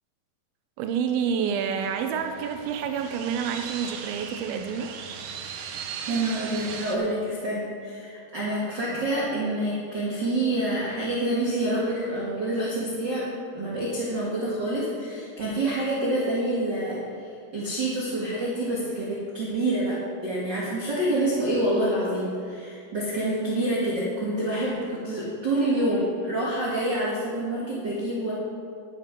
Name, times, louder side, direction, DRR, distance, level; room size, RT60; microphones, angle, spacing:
voice 1, 0.8-4.9, right 7 dB, 90° right, 6 dB, 2.5 m, -28 dB
sound 1, 1.8-7.0, right 7 dB, 70° right, 1.9 m, -38 dB
voice 2, 6.1-13.3 13.5-17.0 17.5-28.3, right 1 dB, 40° right, -6 dB, 1.9 m, -27 dB
10.5 x 9.3 x 6.0 m, 2.3 s
omnidirectional pair, 4.2 m